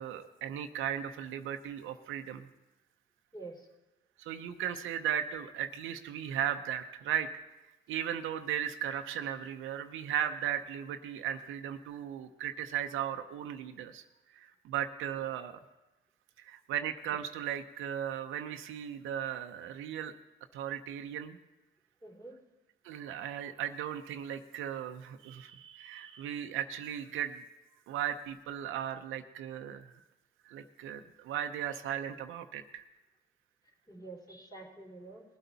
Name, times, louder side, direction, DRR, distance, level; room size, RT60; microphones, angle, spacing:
voice 1, 0.0-2.5 4.2-7.3 7.9-14.0 14.3-15.6 16.4-20.1 20.5-21.4 22.8-27.4 27.9-29.9 30.5-32.8, right 10 dB, 90° right, 7 dB, 0.7 m, -36 dB
voice 2, 3.3-3.7 22.0-22.4 33.9-35.2, right 2 dB, 20° left, 0 dB, 3.5 m, -47 dB
19.5 x 8.2 x 4.0 m, 1.0 s
cardioid pair, 90°, 20 cm